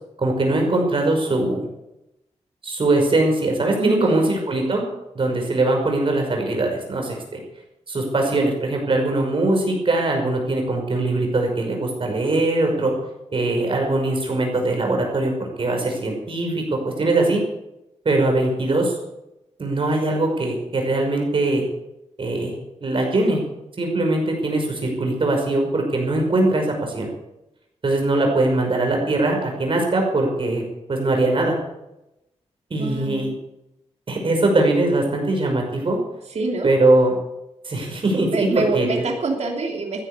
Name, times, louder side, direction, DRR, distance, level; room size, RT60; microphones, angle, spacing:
voice 1, 0.2-1.7 2.6-4.8 5.1-7.4 7.9-12.9 13.3-15.3 15.6-17.4 18.0-18.9 19.6-21.6 22.2-22.5 22.8-23.4 23.8-27.1 27.8-30.6 30.9-31.6 32.7-33.3 34.1-36.0 36.6-37.2 37.6-38.9, right 2 dB, 45° right, 2 dB, 5.7 m, -21 dB
voice 2, 3.8-4.3 32.7-33.3 36.3-36.7 38.3-40.1, right 3 dB, 65° right, 1 dB, 3.0 m, -26 dB
15.0 x 10.5 x 8.3 m, 0.91 s
wide cardioid pair, 105°, 12 cm